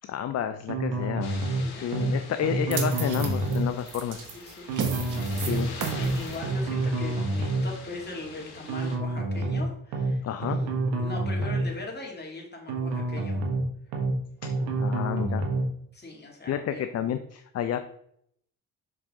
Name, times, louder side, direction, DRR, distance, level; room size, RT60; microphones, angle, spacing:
voice 1, 0.1-1.4 1.8-4.3 5.4-5.7 10.2-10.6 14.4-14.5 14.8-15.4 16.5-17.8, left 9 dB, 45° left, 9 dB, 0.5 m, -30 dB
sound 1, 0.7-1.6 1.9-2.1 2.4-3.7 4.7-5.6 5.9-6.1 6.4-7.7 8.7-9.6 9.9-10.1 10.4-11.7 12.7-13.6 13.9-14.1 14.4-15.7, right 2 dB, 90° right, 1.2 m, -28 dB
sound 2, 1.2-9.0, left 4 dB, 75° left, 1.3 m, -45 dB
sound 3, 2.7-9.0, right 5 dB, 50° right, 1.3 m, -36 dB
voice 2, 4.3-13.4 15.9-16.9, left 2 dB, 25° left, 0 dB, 2.1 m, -41 dB
5.9 x 4.8 x 3.6 m, 0.70 s
cardioid pair, 85°, 38 cm